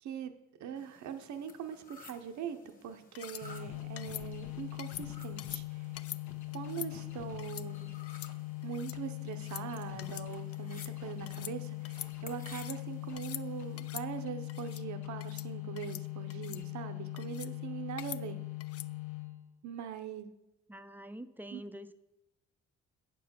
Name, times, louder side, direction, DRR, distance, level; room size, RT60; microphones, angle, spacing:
voice 1, 0.0-0.3 0.6-5.9 6.5-7.9 8.6-18.4 19.6-20.3 21.5-21.6, right 8 dB, 70° right, 8 dB, 0.8 m, -42 dB
sound 1, 0.8-14.3, left 3 dB, 30° left, 1.3 m, -57 dB
sound 2, 3.2-3.4 4.0-4.3 4.8-5.1 5.4-5.6 6.0-6.2 6.5-6.9 7.4-7.7 8.0-8.3 8.6-9.0 9.3-9.7 10.0-10.3 10.5-10.9 11.3-11.6 11.8-12.8 13.1-13.4 13.8-14.1 14.5-14.8 15.2-15.5 15.8-16.0 16.3-16.6 17.2-17.5 18.0-18.2 18.6-18.9, left 12 dB, 50° left, 0.4 m, -45 dB
sound 3, 3.4-19.5, left 19 dB, 75° left, 1.1 m, -41 dB
voice 2, 20.7-21.9, equal, 5° right, 11 dB, 0.5 m, -46 dB
8.4 x 4.6 x 6.9 m, 0.90 s
cardioid pair, 90°, 30 cm